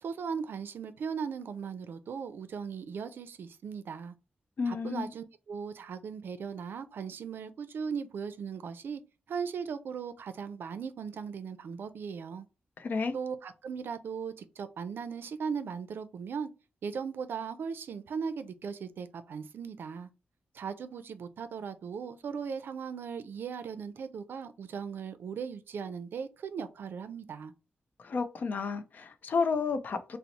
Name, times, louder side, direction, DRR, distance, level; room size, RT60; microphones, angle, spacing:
voice 1, 0.0-4.1 4.7-9.0 9.3-12.5 13.1-16.5 16.8-20.1 20.5-27.5, right 6 dB, 80° right, 0.4 m, -38 dB
voice 2, 4.6-5.1 12.8-13.1 28.0-30.2, left 5 dB, 55° left, 0.4 m, -31 dB
3.9 x 2.0 x 2.8 m
wide cardioid pair, 170°, 4 cm